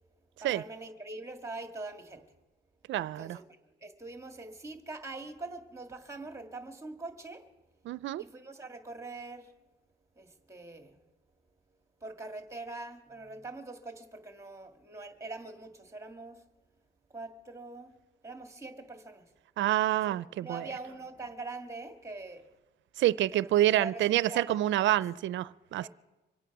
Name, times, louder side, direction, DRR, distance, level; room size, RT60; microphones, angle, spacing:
voice 1, 0.4-2.2 3.2-7.4 8.2-9.5 10.2-11.0 12.0-16.4 17.1-17.9 18.2-19.2 19.9-22.5 23.3-25.0 25.8-25.9, right 3 dB, 15° right, 2.0 m, -43 dB
voice 2, 2.9-3.4 7.9-8.2 19.6-20.7 23.0-25.9, right 14 dB, 70° right, 0.5 m, -27 dB
25.5 x 9.0 x 6.0 m
cardioid pair, 90°, 20 cm